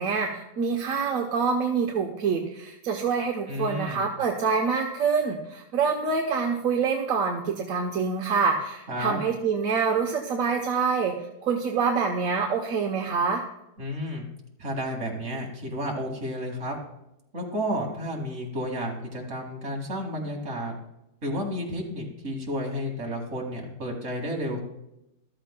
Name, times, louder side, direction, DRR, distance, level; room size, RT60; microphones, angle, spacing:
voice 1, 0.0-11.1 11.4-13.4, right 5 dB, 55° right, 1 dB, 1.1 m, -26 dB
voice 2, 3.5-4.1 8.9-9.2 13.8-14.3 14.6-16.8 17.3-20.8 21.2-24.6, equal, 40° right, 0 dB, 2.3 m, -31 dB
13.5 x 13.0 x 2.2 m, 0.85 s
omnidirectional pair, 2.1 m